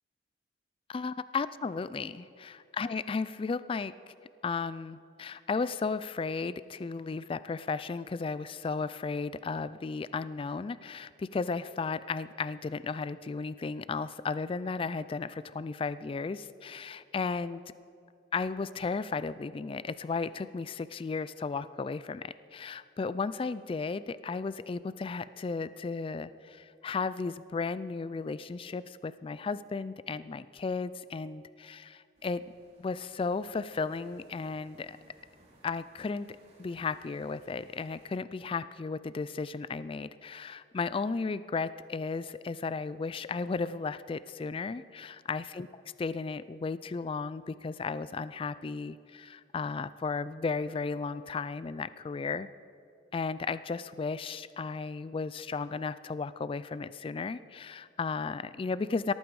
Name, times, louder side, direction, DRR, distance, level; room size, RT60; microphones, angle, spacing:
voice 1, 0.9-4.1 4.4-17.6 18.3-32.5 32.8-35.0 35.6-45.7 46.0-52.5 53.1-59.1, left 4 dB, 30° left, 15 dB, 0.3 m, -34 dB
sound 1, 32.1-38.1, right 1 dB, 35° right, 2.8 m, -63 dB
17.5 x 14.0 x 4.8 m, 2.6 s
head